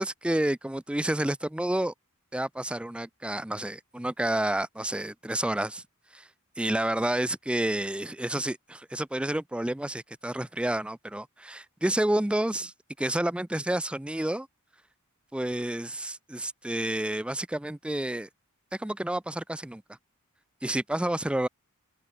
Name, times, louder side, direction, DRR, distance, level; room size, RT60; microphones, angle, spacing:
voice 1, 0.0-1.9 2.3-5.8 6.1-6.3 6.6-12.7 13.0-14.5 15.3-18.3 18.7-19.8 20.6-21.5, right 1 dB, 5° right, 0.4 m, -29 dB
open air
head